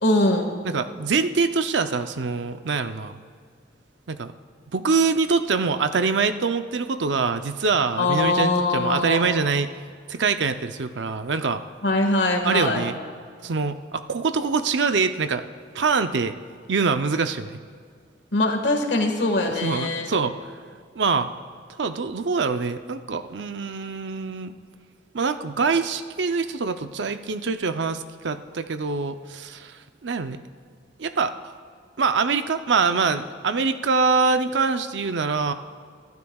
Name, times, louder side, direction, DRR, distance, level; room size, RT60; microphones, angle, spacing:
voice 1, 0.0-0.5 8.0-9.3 11.8-12.8 18.3-20.1, left 2 dB, 70° left, 3 dB, 1.7 m, -22 dB
voice 2, 0.6-3.2 4.1-4.3 4.7-9.7 10.1-11.6 12.4-13.0 13.4-15.4 15.7-16.4 16.7-17.6 19.5-20.5 21.0-21.3 21.8-24.5 25.1-30.4 31.0-31.4 32.0-35.5, right 4 dB, 75° right, 9 dB, 0.6 m, -24 dB
24.0 x 12.0 x 2.4 m, 2.1 s
head